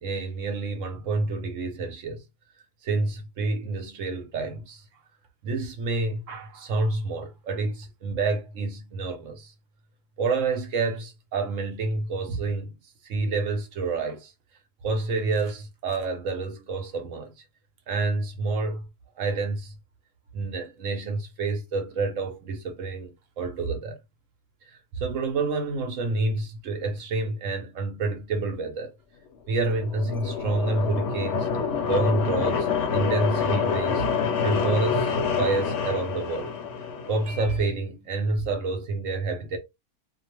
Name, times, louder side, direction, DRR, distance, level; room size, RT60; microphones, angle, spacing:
voice 1, 0.0-2.2 2.8-4.8 5.4-9.5 10.2-12.8 13.0-14.3 14.8-17.3 17.9-18.9 19.2-19.8 20.3-24.0 24.7-28.9 29.5-31.5 31.9-34.1 34.4-36.5 37.1-39.6, right 3 dB, 65° right, 1.0 m, -28 dB
sound 1, 29.5-37.4, left 6 dB, 60° left, 0.8 m, -27 dB
2.8 x 2.1 x 3.0 m
omnidirectional pair, 1.6 m